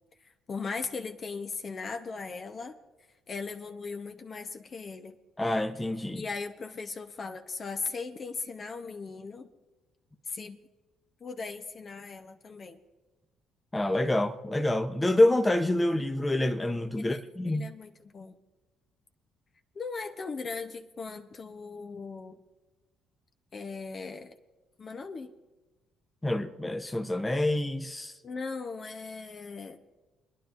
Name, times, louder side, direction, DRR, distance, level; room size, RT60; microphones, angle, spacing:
voice 1, 0.5-2.8 3.3-5.2 6.1-9.5 10.3-10.6 11.2-12.8 17.0-18.4 19.7-22.4 23.5-24.4 24.8-25.3 28.2-29.8, left 4 dB, 45° left, 0.9 m, -38 dB
voice 2, 5.4-6.2 13.7-17.7 26.2-28.1, left 1 dB, 15° left, 0.8 m, -27 dB
29.5 x 10.5 x 2.6 m
hypercardioid pair, 60°, 0 cm